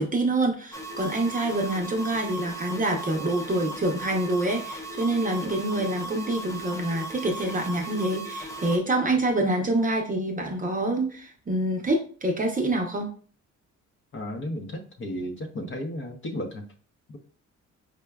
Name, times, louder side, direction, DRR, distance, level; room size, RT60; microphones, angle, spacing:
voice 1, 0.0-13.1, right 2 dB, 25° right, 2 dB, 0.7 m, -26 dB
sound 1, 0.7-8.8, right 2 dB, 10° left, 0.4 m, -37 dB
voice 2, 14.1-16.7 17.1-17.2, left 1 dB, 40° left, 3 dB, 0.7 m, -34 dB
4.8 x 2.2 x 2.2 m, 0.43 s
cardioid pair, 90°, 30 cm